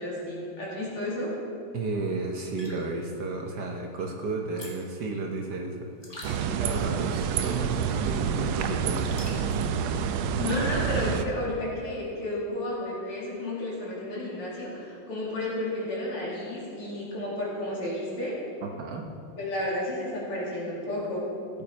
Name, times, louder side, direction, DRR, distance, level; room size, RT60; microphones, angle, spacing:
voice 1, 0.0-1.4 10.4-18.4 19.4-21.3, left 1 dB, 80° left, -5 dB, 3.6 m, -32 dB
voice 2, 1.7-5.9 6.4-9.2 18.6-19.0, right 3 dB, 60° right, 1 dB, 1.3 m, -32 dB
sound 1, 2.4-9.9, left 1 dB, 15° left, 1.5 m, -49 dB
sound 2, 6.2-11.2, right 7 dB, 75° right, 1.3 m, -28 dB
15.5 x 7.7 x 4.4 m, 2.5 s
omnidirectional pair, 2.4 m